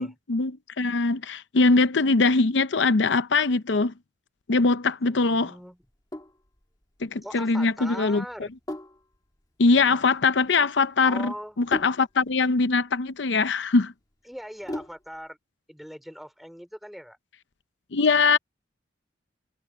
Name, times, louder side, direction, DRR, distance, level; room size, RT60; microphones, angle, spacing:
voice 1, 0.0-3.9 4.5-5.5 7.0-8.2 9.6-13.9 17.9-18.4, left 3 dB, 75° left, 0.7 m, -22 dB
voice 2, 5.1-5.8 7.2-8.5 11.0-11.6 14.3-15.4 15.7-17.2, equal, ahead, 3.7 m, -40 dB
Sink (filling or washing), 5.8-15.3, left 1 dB, 20° left, 2.0 m, -41 dB
head